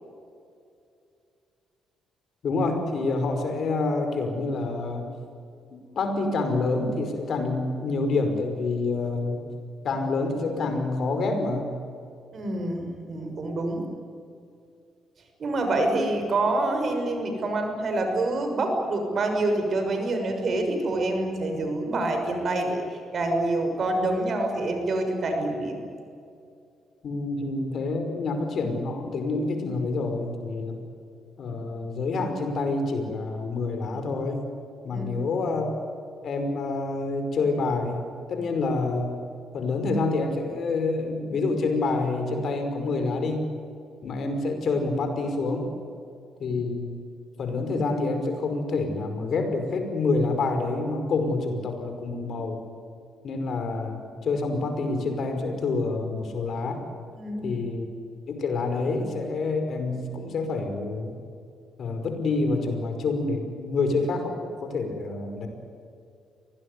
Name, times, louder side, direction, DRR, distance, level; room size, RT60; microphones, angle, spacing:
voice 1, 2.4-5.1 6.0-9.5 9.8-11.7 27.0-30.8 31.4-34.5 34.8-35.7 36.2-39.2 39.5-43.5 44.0-45.7 46.4-47.0 47.4-52.6 53.2-56.8 57.4-57.9 58.3-61.1 61.8-65.5, left 3 dB, 60° left, 5 dB, 5.4 m, -27 dB
voice 2, 12.3-13.8 15.4-25.8 34.9-35.1 57.2-57.6, right 2 dB, 50° right, 5 dB, 6.4 m, -26 dB
24.5 x 19.0 x 9.8 m, 2.5 s
cardioid pair, 90°, 0 cm